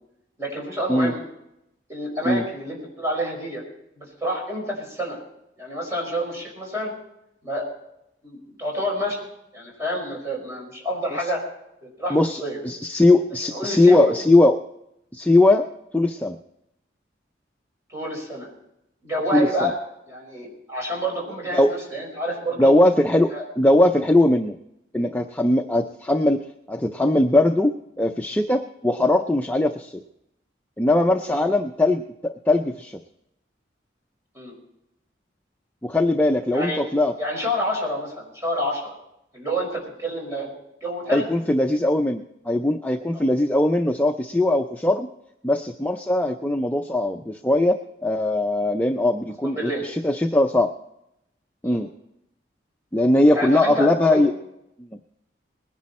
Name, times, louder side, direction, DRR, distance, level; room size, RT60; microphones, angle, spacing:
voice 1, 0.4-1.2 1.9-3.6 3.9-5.2 5.6-6.9 7.4-7.6 8.2-9.2 9.5-11.4 11.8-12.6 13.5-14.1 17.9-18.5 19.0-19.8 20.1-22.7 23.3-23.4 31.3-31.5 34.3-34.5 36.5-36.8 37.2-39.0 39.3-40.5 40.8-41.3 43.1-43.3 49.4-49.8 51.6-51.8 53.3-54.2, equal, 15° right, -2 dB, 5.4 m, -28 dB
voice 2, 12.1-14.6 15.1-15.7 15.9-16.4 19.3-19.7 21.5-21.7 22.6-24.6 24.9-30.0 30.8-33.0 35.8-37.1 41.1-45.1 45.4-50.7 51.6-51.9 52.9-54.3 54.8-54.9, left 1 dB, 10° left, 4 dB, 0.5 m, -20 dB
20.5 x 10.5 x 4.2 m, 0.83 s
head